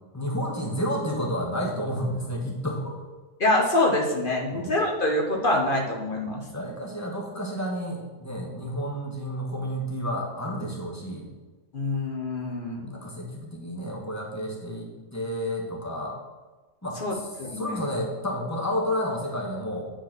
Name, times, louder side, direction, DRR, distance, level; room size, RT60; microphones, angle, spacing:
voice 1, 0.1-3.0 4.5-4.7 6.4-11.3 12.8-16.2 16.8-19.9, equal, 15° left, -2 dB, 1.6 m, -31 dB
voice 2, 3.4-6.5 11.7-12.9 17.0-17.8, left 1 dB, 45° left, 0 dB, 1.2 m, -25 dB
8.8 x 4.6 x 6.1 m, 1.3 s
omnidirectional pair, 1.3 m